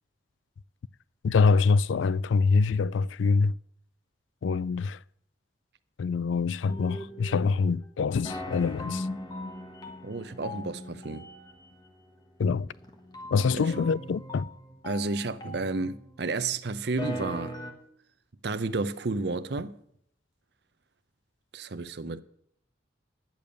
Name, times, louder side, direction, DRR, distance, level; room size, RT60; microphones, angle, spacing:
voice 1, 1.2-3.6 4.4-5.0 6.0-9.1 12.4-12.7 13.3-14.5, left 4 dB, 80° left, 0.4 m, -25 dB
sound 1, 6.7-7.9 8.2-16.4 16.8-17.7, left 1 dB, 20° left, 1.4 m, -40 dB
voice 2, 10.0-11.3 13.5-13.8 14.8-17.6 18.4-19.8 21.5-22.2, right 3 dB, 60° right, 0.6 m, -31 dB
10.5 x 7.0 x 6.4 m
head